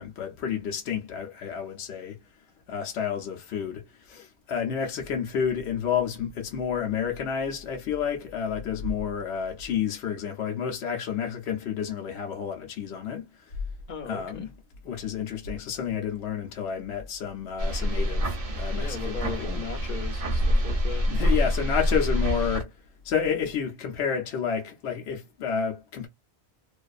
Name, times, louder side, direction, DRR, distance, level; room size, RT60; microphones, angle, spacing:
voice 1, 0.0-2.2 2.7-13.6 14.1-14.5 14.8-19.6 21.1-22.8 23.0-26.1, left 7 dB, 80° left, 0.9 m, -30 dB
voice 2, 13.9-14.5 18.7-21.1, left 6 dB, 55° left, 0.6 m, -38 dB
sound 1, 17.6-22.6, equal, 45° right, 0.5 m, -26 dB
2.5 x 2.3 x 2.3 m
omnidirectional pair, 1.1 m